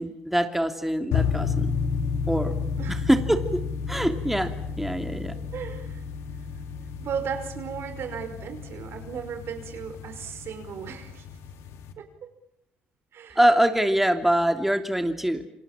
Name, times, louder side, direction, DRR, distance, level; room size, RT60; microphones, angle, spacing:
voice 1, 0.0-1.8 2.3-2.6 3.1-3.6 3.9-5.3 13.3-15.4, right 1 dB, 5° right, 7 dB, 3.0 m, -24 dB
sound 1, 1.1-11.9, left 6 dB, 75° left, 2.6 m, -31 dB
voice 2, 2.8-3.1 5.5-6.0 7.0-11.3 12.0-12.3 13.1-13.4, right 7 dB, 65° right, 8 dB, 5.6 m, -36 dB
28.5 x 26.5 x 7.5 m, 0.76 s
hypercardioid pair, 50°, 5 cm